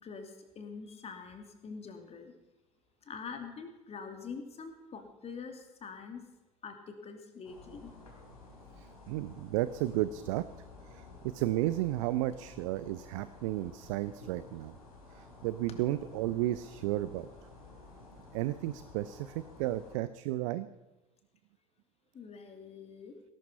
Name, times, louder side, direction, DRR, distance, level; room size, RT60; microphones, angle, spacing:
voice 1, 0.0-2.3 3.0-6.2 6.6-7.9 22.1-23.1, left 5 dB, 35° left, 5 dB, 2.7 m, -45 dB
sound 1, 7.4-20.0, left 3 dB, 80° left, 3.6 m, -53 dB
voice 2, 8.8-10.4 10.9-14.8 15.1-17.3 18.3-20.7, right 15 dB, 60° right, 14 dB, 0.6 m, -33 dB
18.5 x 12.0 x 5.5 m, 1.1 s
figure-of-eight pair, 60°, 19 cm